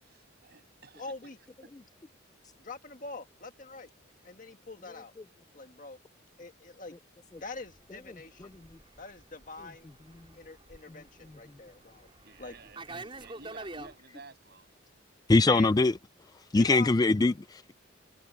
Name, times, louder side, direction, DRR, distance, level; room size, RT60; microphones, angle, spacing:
voice 1, 0.0-1.3 1.6-1.7 12.2-14.7, right 4 dB, 55° right, 7.9 m, -53 dB
voice 2, 1.0-1.4 2.6-3.9 4.2-5.1 5.5-6.0 6.4-6.9 7.4-8.6 9.0-9.9 10.3-12.1 12.4-12.5 15.4-15.7 16.6-16.9, left 3 dB, 40° left, 1.7 m, -44 dB
Fixed-wing aircraft airplane, 7.4-13.9, right 2 dB, 25° right, 5.2 m, -47 dB
voice 3, 15.3-15.9 16.5-17.7, left 3 dB, 20° left, 0.3 m, -22 dB
head